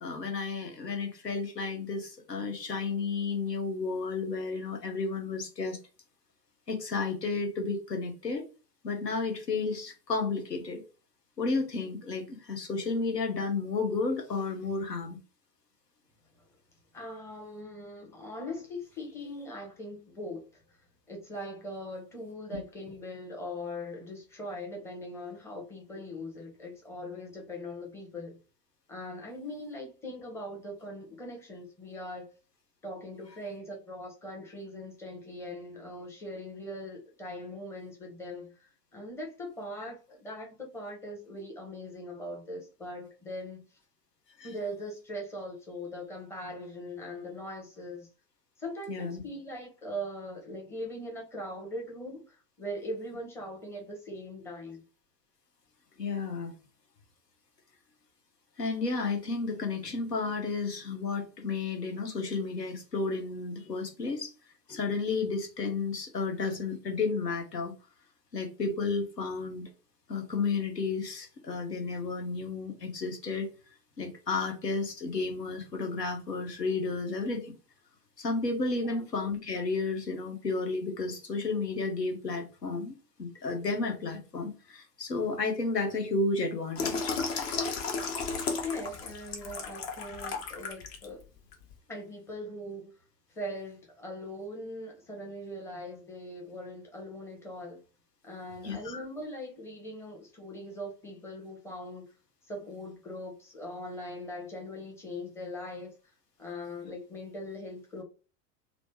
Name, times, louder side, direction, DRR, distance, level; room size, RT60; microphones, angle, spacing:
voice 1, 0.0-5.8 6.7-8.4 8.8-10.8 11.4-15.2 22.5-22.6 39.8-39.9 44.4-44.5 48.9-49.2 56.0-56.5 58.6-64.3 64.7-67.7 68.3-69.7 70.1-73.5 74.0-77.5 78.2-82.9 83.2-87.2 98.6-99.0, left 4 dB, 80° left, 0.9 m, -32 dB
voice 2, 16.9-20.6 21.1-28.4 28.9-32.3 32.8-43.6 44.4-48.1 48.6-54.8 78.8-79.0 88.6-91.2 91.9-92.9 93.3-97.8 98.2-102.1 102.5-105.9 106.4-108.0, left 1 dB, 5° left, 0.7 m, -41 dB
Water tap faucet / Sink (filling or washing), 86.8-91.1 91.5-91.7, left 4 dB, 40° left, 0.8 m, -34 dB
3.0 x 2.0 x 3.1 m
figure-of-eight pair, 85°, 48 cm